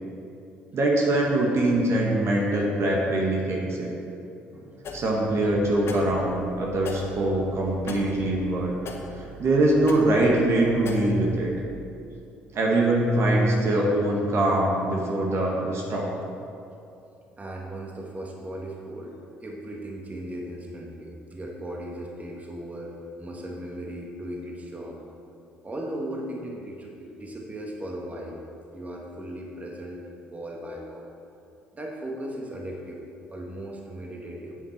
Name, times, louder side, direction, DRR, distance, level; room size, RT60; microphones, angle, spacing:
voice 1, 0.7-3.9 4.9-8.7 9.1-11.5 12.5-16.1, right 1 dB, 50° right, -2 dB, 1.7 m, -23 dB
voice 2, 4.5-4.8 17.4-25.0 25.6-28.4 28.7-31.1 31.7-33.0 33.3-34.6, right 1 dB, 25° right, -1 dB, 1.7 m, -37 dB
sound 1, 4.8-11.6, left 1 dB, 50° left, 1.4 m, -40 dB
9.8 x 8.2 x 4.4 m, 2.6 s
hypercardioid pair, 55°, 6 cm